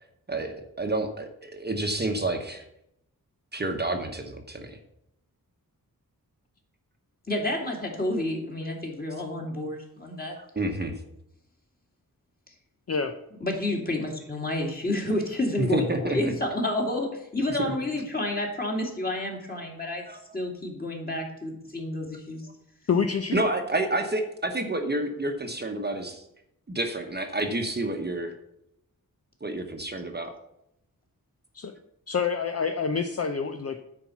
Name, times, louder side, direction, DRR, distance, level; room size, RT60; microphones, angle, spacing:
voice 1, 0.3-2.6 3.5-4.8 10.6-10.9 15.6-16.3 17.7-17.8 20.1-20.2 23.3-26.2 26.7-28.3 29.4-30.3, right 2 dB, 30° right, 5 dB, 1.0 m, -29 dB
voice 2, 7.3-10.4 13.4-20.0 20.3-22.4, left 1 dB, 25° left, 0 dB, 2.4 m, -30 dB
voice 3, 22.9-23.4 31.5-31.7 32.1-33.8, left 5 dB, 45° left, 6 dB, 0.6 m, -27 dB
9.7 x 4.6 x 7.1 m, 0.80 s
wide cardioid pair, 105°, 36 cm